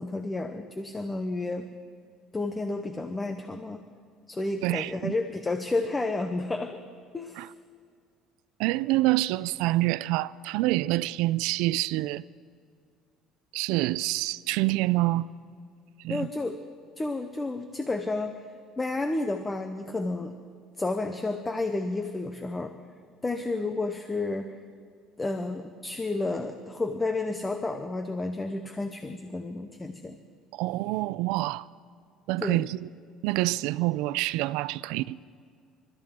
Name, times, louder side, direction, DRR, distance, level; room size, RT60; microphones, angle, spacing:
voice 1, 0.0-1.7 2.3-3.8 4.3-6.8 7.1-7.4 16.1-16.6 17.0-18.4 18.8-20.3 20.8-22.7 23.2-24.6 25.2-30.2 32.4-32.6, left 2 dB, 15° left, 0.7 m, -31 dB
voice 2, 4.6-5.1 7.4-7.5 8.6-12.2 13.5-15.3 16.0-16.3 30.5-31.6 32.3-32.9 33.2-35.2, right 18 dB, 80° right, 0.4 m, -27 dB
29.0 x 13.5 x 3.7 m
cardioid pair, 155°, 0 cm